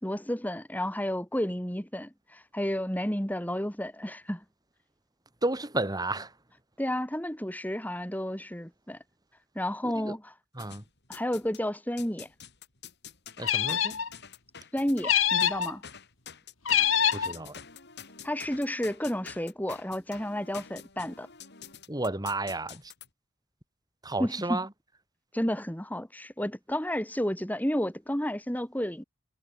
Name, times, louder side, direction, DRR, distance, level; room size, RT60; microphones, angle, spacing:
voice 1, 0.0-4.4 6.8-9.0 9.5-10.3 11.1-12.3 14.7-15.8 18.2-21.3 24.2-24.6 25.3-29.0, equal, 10° left, 3.1 m, -31 dB
voice 2, 5.4-6.3 9.8-10.2 10.5-10.8 13.4-14.0 17.1-17.6 21.9-22.9 24.0-24.7, right 2 dB, 20° right, 2.8 m, -32 dB
sound 1, 10.6-11.6 12.0-23.1, left 7 dB, 55° left, 5.2 m, -47 dB
sound 2, 13.4-14.1 15.0-15.7 16.6-17.3, left 9 dB, 70° left, 2.8 m, -25 dB
head